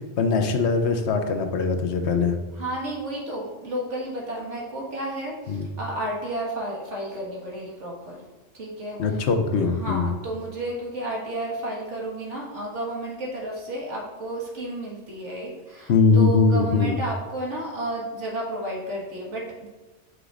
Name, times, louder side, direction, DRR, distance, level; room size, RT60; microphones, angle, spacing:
voice 1, 0.2-2.4 5.5-5.7 9.0-10.1 15.9-17.0, left 4 dB, 70° left, 6 dB, 1.0 m, -21 dB
voice 2, 2.5-8.2 8.5-9.3 9.8-19.7, right 1 dB, 85° right, -3 dB, 2.0 m, -32 dB
8.1 x 6.0 x 2.5 m, 1.2 s
omnidirectional pair, 1.2 m